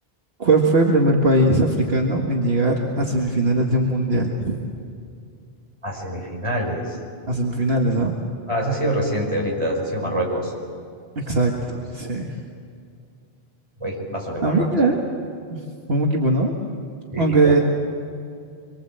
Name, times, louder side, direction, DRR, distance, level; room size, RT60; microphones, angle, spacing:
voice 1, 0.4-4.6 7.3-8.1 11.2-12.3 14.4-15.0 15.5-15.6 15.9-16.5 17.2-17.6, right 2 dB, 70° right, 0 dB, 2.0 m, -20 dB
voice 2, 5.8-7.0 8.5-10.5 13.8-14.7 17.1-17.6, equal, 30° right, -2 dB, 5.6 m, -25 dB
26.0 x 23.5 x 7.7 m, 2.3 s
omnidirectional pair, 1.1 m